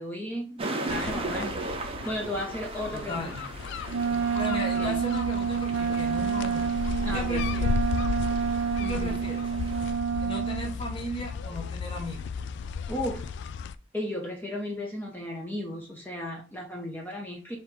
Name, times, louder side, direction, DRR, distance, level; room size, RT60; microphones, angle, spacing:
voice 1, 0.0-3.3 4.6-5.0 7.1-7.4 8.8-9.2 12.9-13.3 13.9-17.6, left 1 dB, 10° left, -1 dB, 0.7 m, -35 dB
sound 1, 0.6-10.0, right 2 dB, 30° right, 0.6 m, -38 dB
sound 2, 0.9-13.7, left 5 dB, 60° left, 0.3 m, -34 dB
voice 2, 2.9-3.4 4.3-7.8 8.8-9.4 10.2-12.3, left 1 dB, 30° left, -1 dB, 1.0 m, -36 dB
Wind instrument woodwind instrument, 3.9-10.7, right 7 dB, 80° right, 0.4 m, -28 dB
4.4 x 2.8 x 3.6 m, 0.36 s
head